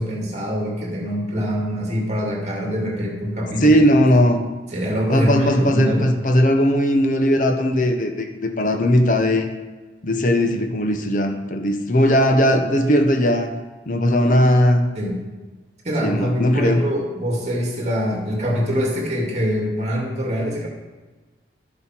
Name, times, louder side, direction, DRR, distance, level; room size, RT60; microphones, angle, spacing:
voice 1, 0.0-3.8 4.7-6.1 14.9-15.2 15.8-20.7, equal, 35° right, -2 dB, 2.5 m, -24 dB
voice 2, 3.6-4.4 5.1-9.5 10.0-13.5 13.9-14.9 16.0-16.8, equal, 45° left, 5 dB, 0.9 m, -18 dB
12.0 x 7.4 x 4.5 m, 1.2 s
head